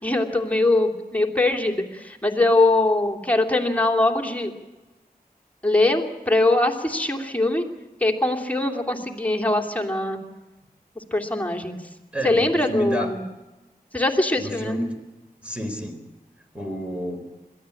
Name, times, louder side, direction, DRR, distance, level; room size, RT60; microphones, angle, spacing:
voice 1, 0.0-4.5 5.6-7.6 8.0-10.2 10.9-11.8 12.2-13.2 13.9-14.8, left 2 dB, 10° left, 2 dB, 2.9 m, -22 dB
voice 2, 12.1-13.1 14.4-14.9 15.4-16.0 16.5-17.2, equal, 10° right, 5 dB, 4.2 m, -29 dB
21.5 x 15.0 x 8.5 m, 1.1 s
wide cardioid pair, 45°, 16 cm